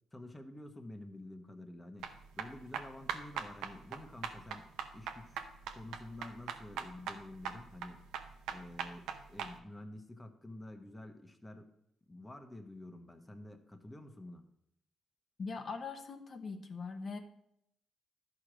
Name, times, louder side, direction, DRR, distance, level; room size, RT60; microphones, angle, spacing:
voice 1, 0.1-2.0 2.4-5.4 5.7-8.0 8.5-11.7 12.1-14.4, left 1 dB, 15° left, 5 dB, 1.0 m, -49 dB
sound 1, 2.0-9.5, right 7 dB, 90° right, 0.8 m, -42 dB
voice 2, 15.4-17.2, left 4 dB, 45° left, 5 dB, 1.0 m, -41 dB
11.5 x 4.9 x 6.1 m, 0.78 s
cardioid pair, 90°, 0 cm